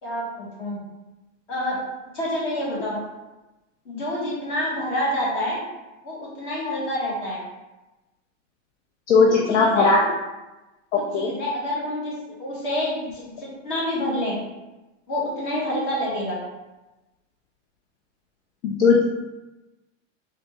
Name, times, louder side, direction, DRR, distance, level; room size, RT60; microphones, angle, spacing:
voice 1, 0.0-0.8 1.5-1.8 2.1-3.0 3.8-5.6 6.0-7.4 9.3-9.9 10.9-12.1 12.4-14.4 15.1-16.4, left 1 dB, 40° left, -5 dB, 1.4 m, -27 dB
voice 2, 9.1-10.0 10.9-11.3 18.6-19.0, left 4 dB, 65° left, -1 dB, 0.6 m, -18 dB
3.7 x 3.3 x 2.9 m, 1.1 s
supercardioid pair, 175°, 39 cm